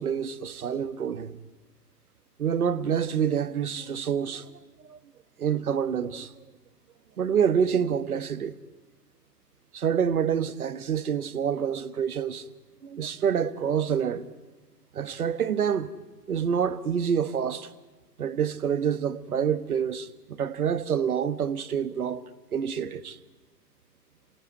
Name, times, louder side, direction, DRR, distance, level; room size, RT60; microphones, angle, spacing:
voice 1, 0.0-1.4 2.4-5.0 5.4-6.3 7.2-8.5 9.7-12.4 12.8-14.3 14.9-15.9 16.3-17.7 18.2-22.2 22.5-23.2, right 7 dB, 60° right, 1.5 m, -27 dB
27.5 x 20.0 x 9.5 m
figure-of-eight pair, 125°, 49 cm